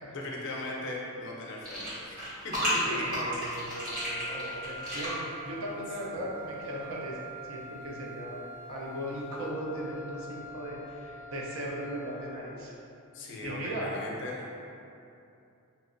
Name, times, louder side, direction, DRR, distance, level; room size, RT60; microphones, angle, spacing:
voice 1, 0.1-3.2 6.1-6.3 13.1-14.4, left 1 dB, 55° left, -2 dB, 0.4 m, -39 dB
sound 1, 1.6-5.2, equal, 40° right, 1.2 m, -33 dB
voice 2, 2.8-7.2 7.5-8.4 8.7-12.7 13.4-13.9, right 1 dB, 70° right, -3 dB, 0.5 m, -37 dB
Wind instrument woodwind instrument, 3.7-12.4, equal, ahead, 0.5 m, -45 dB
2.9 x 2.8 x 2.5 m, 2.7 s
head